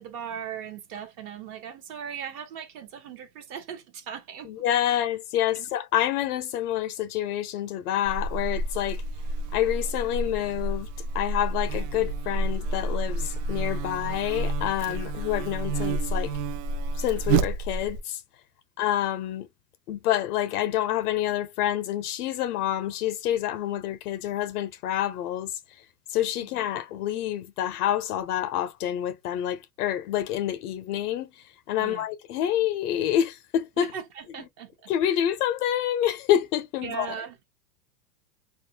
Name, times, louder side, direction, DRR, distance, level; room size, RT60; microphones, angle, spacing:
voice 1, 0.0-5.0 5.6-5.7 26.4-26.5 31.8-32.0 33.8-35.3 36.8-37.4, right 8 dB, 30° right, 0.5 m, -39 dB
voice 2, 4.5-9.0 9.5-10.9 11.1-16.3 16.9-18.2 18.8-19.5 19.9-25.6 26.1-33.9 34.9-37.1, left 11 dB, 65° left, 0.5 m, -27 dB
Buzz, 8.0-18.0, right 2 dB, 70° right, 0.6 m, -29 dB
2.4 x 2.1 x 2.6 m
supercardioid pair, 140°, 50 cm